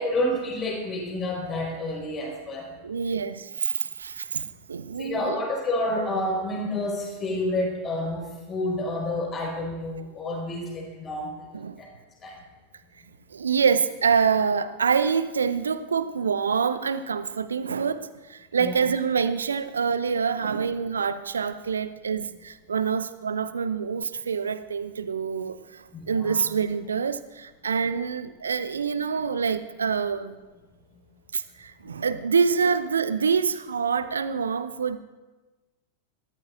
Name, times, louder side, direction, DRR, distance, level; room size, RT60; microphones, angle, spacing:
voice 1, 0.0-2.7 5.0-11.3 11.8-11.9 12.2-12.4 18.6-18.8 25.9-26.4, left 1 dB, 25° left, -1 dB, 4.7 m, -29 dB
voice 2, 2.8-5.4 11.5-11.8 13.3-30.4 31.3-35.0, right 6 dB, 70° right, 14 dB, 0.6 m, -26 dB
21.5 x 13.5 x 2.5 m, 1.2 s
figure-of-eight pair, 90°, 0 cm